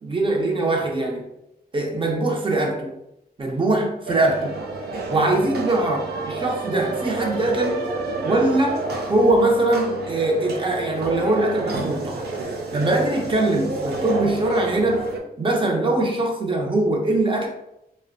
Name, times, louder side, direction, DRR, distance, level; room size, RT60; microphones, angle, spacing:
voice 1, 0.0-1.2 1.7-2.9 3.4-4.6 5.1-6.0 6.3-7.9 8.2-8.8 9.1-12.3 12.7-15.0 15.4-17.5, right 2 dB, 30° right, 0 dB, 0.6 m, -22 dB
sound 1, 4.1-15.2, right 3 dB, 85° right, 0.4 m, -29 dB
2.5 x 2.1 x 2.5 m, 0.83 s
cardioid pair, 75°, 16 cm